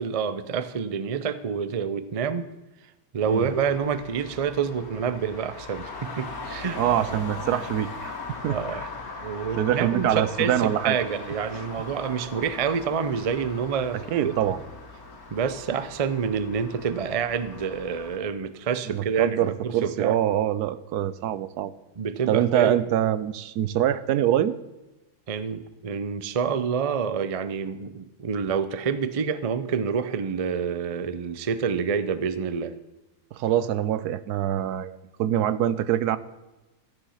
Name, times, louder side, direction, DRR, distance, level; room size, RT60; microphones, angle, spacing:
voice 1, 0.0-2.5 3.1-6.8 8.5-8.8 9.2-14.3 15.3-20.2 22.0-22.8 25.3-32.7, right 6 dB, 55° right, 13 dB, 0.3 m, -28 dB
Traffic noise roadway noise, 3.2-18.2, left 3 dB, 60° left, 2.0 m, -40 dB
voice 2, 6.8-8.2 8.4-8.9 9.5-11.0 14.1-14.6 18.9-21.7 22.3-24.6 33.3-36.2, right 11 dB, 80° right, 15 dB, 1.2 m, -24 dB
14.0 x 10.0 x 5.7 m, 1.1 s
omnidirectional pair, 1.7 m